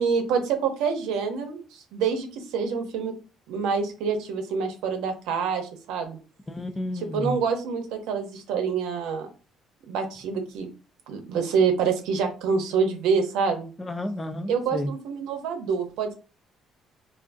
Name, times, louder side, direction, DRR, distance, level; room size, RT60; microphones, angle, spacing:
voice 1, 0.0-3.1 3.5-6.2 6.9-9.3 9.9-10.7 11.1-13.7 14.5-16.1, right 5 dB, 85° right, 5 dB, 0.7 m, -26 dB
voice 2, 6.5-7.4 13.8-14.9, left 1 dB, 20° left, 8 dB, 0.5 m, -31 dB
3.4 x 2.5 x 2.6 m, 0.35 s
cardioid pair, 90°, 0 cm